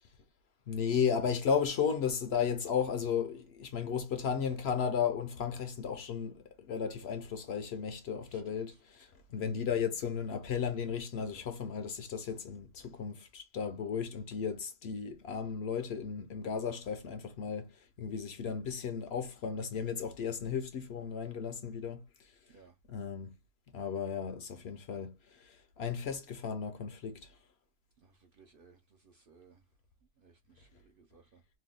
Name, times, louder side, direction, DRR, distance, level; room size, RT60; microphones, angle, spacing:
voice 1, 0.7-17.7 18.0-22.0 22.9-23.4 23.7-27.3, left 7 dB, 60° left, 0.7 m, -34 dB
voice 2, 8.2-8.8 22.5-22.8 28.0-29.6 30.2-31.4, right 4 dB, 60° right, 0.6 m, -62 dB
2.8 x 2.2 x 3.5 m
omnidirectional pair, 1.3 m